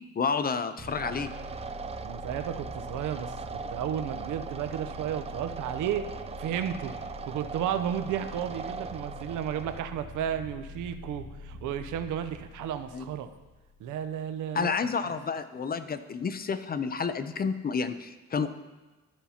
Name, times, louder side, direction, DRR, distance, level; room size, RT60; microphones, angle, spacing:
voice 1, 0.2-1.3 12.9-13.1 14.5-18.5, left 5 dB, 30° left, 11 dB, 0.5 m, -30 dB
sound 1, 0.8-14.2, left 2 dB, 5° right, 1.5 m, -45 dB
sound 2, 0.9-9.8, right 5 dB, 20° right, 0.3 m, -40 dB
voice 2, 2.0-6.1 6.4-6.9 7.3-13.3 13.8-14.7, right 9 dB, 80° right, 10 dB, 0.7 m, -33 dB
13.5 x 5.7 x 2.8 m, 1.2 s
cardioid pair, 90°, 30 cm